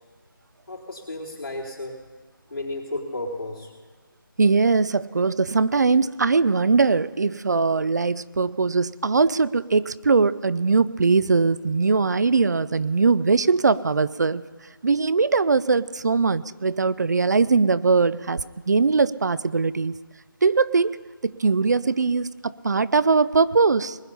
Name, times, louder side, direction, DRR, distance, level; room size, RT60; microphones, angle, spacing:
voice 1, 0.7-2.0 2.5-3.7, left 2 dB, 80° left, -3 dB, 4.0 m, -33 dB
voice 2, 4.4-14.4 14.8-19.9 20.4-21.0 21.2-24.0, right 4 dB, 50° right, 18 dB, 0.4 m, -21 dB
20.5 x 10.0 x 5.5 m, 1.5 s
figure-of-eight pair, 170°, 12 cm